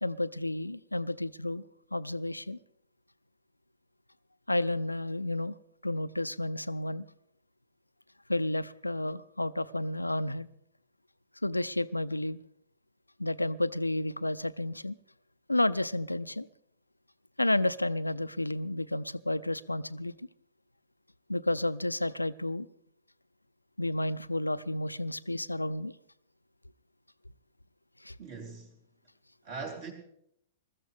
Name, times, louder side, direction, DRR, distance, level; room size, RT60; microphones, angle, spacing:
voice 1, 0.0-1.6 1.9-2.6 4.5-5.6 5.8-7.0 8.3-10.5 11.4-12.4 13.2-15.0 15.5-16.5 17.4-20.1 21.3-22.7 23.8-25.9 28.0-28.2, left 1 dB, 85° left, 0.5 m, -31 dB
voice 2, 28.2-28.7 29.4-29.9, right 4 dB, 45° right, 4.1 m, -40 dB
22.0 x 14.0 x 3.6 m
figure-of-eight pair, 105°, 0 cm